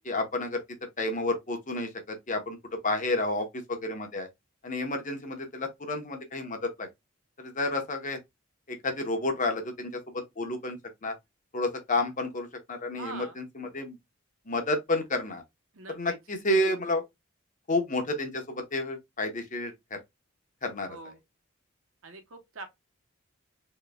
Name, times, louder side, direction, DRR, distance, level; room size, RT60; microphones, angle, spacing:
voice 1, 0.0-0.6 1.0-4.3 4.6-6.9 7.4-8.2 8.7-11.1 11.5-14.0 14.5-15.4 15.9-17.0 17.7-20.0 20.6-21.0, left 2 dB, 40° left, 0.9 m, -30 dB
voice 2, 12.9-13.4 15.7-16.2 20.9-21.2 22.0-22.7, right 3 dB, 75° right, 1.0 m, -43 dB
4.6 x 3.1 x 2.2 m
head